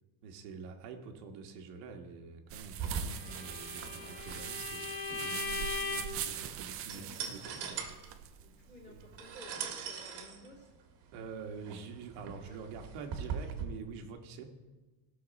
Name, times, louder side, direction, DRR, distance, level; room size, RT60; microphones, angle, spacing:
voice 1, 0.2-7.8 8.9-9.1 11.1-14.5, right 5 dB, 75° right, 4 dB, 1.5 m, -46 dB
sound 1, 2.5-9.4, right 9 dB, 30° right, 0.4 m, -42 dB
sound 2, 2.7-13.6, right 6 dB, 50° right, 1.6 m, -42 dB
Bowed string instrument, 3.3-6.3, left 5 dB, 50° left, 1.3 m, -39 dB
voice 2, 6.8-7.3 8.4-10.7 12.3-12.6, left 1 dB, 20° left, -2 dB, 2.6 m, -54 dB
17.0 x 6.4 x 4.1 m, 1.2 s
cardioid pair, 165°, 49 cm